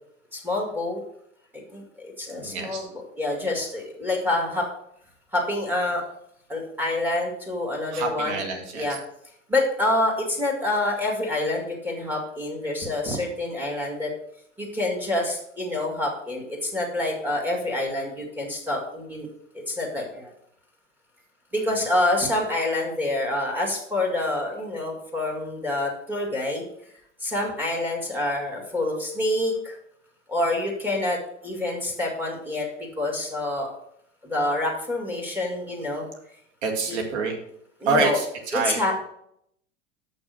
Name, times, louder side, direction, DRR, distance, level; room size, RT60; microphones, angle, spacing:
voice 1, 0.3-1.0 1.7-4.7 5.3-6.0 6.5-8.4 8.7-9.0 9.5-14.1 14.6-19.3 19.7-20.3 21.5-26.6 27.2-29.8 30.3-31.2 31.4-32.7 33.0-33.7 34.2-36.1 36.9-37.0 37.8-38.2 38.5-38.9, left 2 dB, 5° right, -1 dB, 2.5 m, -27 dB
voice 2, 2.4-2.9 7.9-9.0 21.6-21.8 36.6-37.4 37.9-38.8, right 3 dB, 60° right, 2 dB, 2.1 m, -27 dB
6.5 x 6.1 x 6.4 m, 0.72 s
figure-of-eight pair, 85°, 38 cm